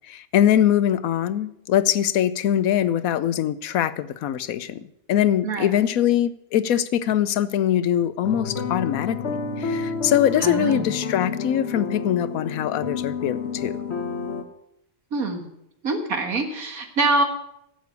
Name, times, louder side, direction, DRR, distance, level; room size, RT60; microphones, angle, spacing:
voice 1, 0.1-13.8, left 10 dB, 80° left, 15 dB, 1.1 m, -22 dB
sound 1, 8.2-14.4, left 5 dB, 50° left, 1.4 m, -30 dB
voice 2, 10.4-10.9 15.1-15.5 15.8-17.2, right 3 dB, 85° right, 5 dB, 2.2 m, -24 dB
11.5 x 7.9 x 8.1 m, 0.79 s
omnidirectional pair, 1.5 m